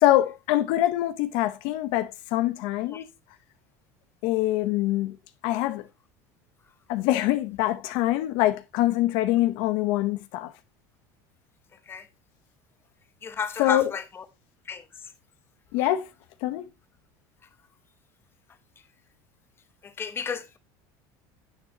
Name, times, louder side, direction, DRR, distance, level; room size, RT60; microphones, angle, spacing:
voice 1, 0.0-3.0 4.2-5.1 5.4-5.8 6.9-10.5 13.6-13.9 15.7-16.1 16.4-16.6, left 15 dB, 70° left, 0.9 m, -24 dB
voice 2, 13.2-14.0 14.7-14.8 20.0-20.6, left 6 dB, 25° left, 1.1 m, -31 dB
9.6 x 8.3 x 2.8 m
supercardioid pair, 125°, 9 cm